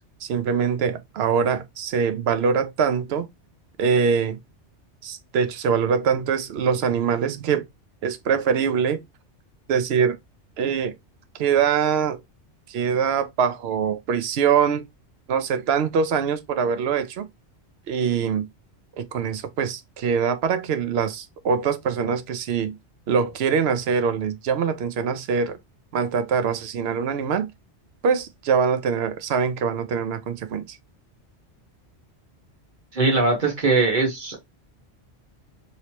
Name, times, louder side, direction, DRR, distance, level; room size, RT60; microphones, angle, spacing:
voice 1, 0.2-3.3 3.8-4.4 5.0-7.6 8.0-9.0 9.7-10.2 10.6-10.9 11.4-12.2 12.7-14.9 15.3-17.3 17.9-18.5 19.0-22.8 23.1-25.6 25.9-27.5 28.0-30.8, right 6 dB, 65° right, 0.8 m, -23 dB
voice 2, 32.9-34.4, right 3 dB, 45° right, 1.3 m, -21 dB
3.1 x 2.9 x 2.8 m
omnidirectional pair, 1.2 m